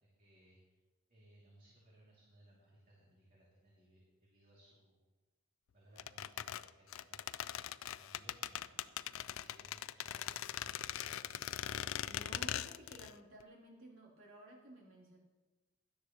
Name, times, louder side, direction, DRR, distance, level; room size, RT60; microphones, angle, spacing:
voice 1, 0.0-0.8 1.1-5.0 5.7-7.6 7.9-8.8 9.1-11.4, right 1 dB, 45° right, -6 dB, 2.8 m, -64 dB
sound 1, 6.0-13.1 13.4-13.5, left 11 dB, 75° left, 0.4 m, -41 dB
voice 2, 12.0-15.2, right 1 dB, 80° right, -4 dB, 3.3 m, -55 dB
16.5 x 12.0 x 3.1 m, 1.2 s
head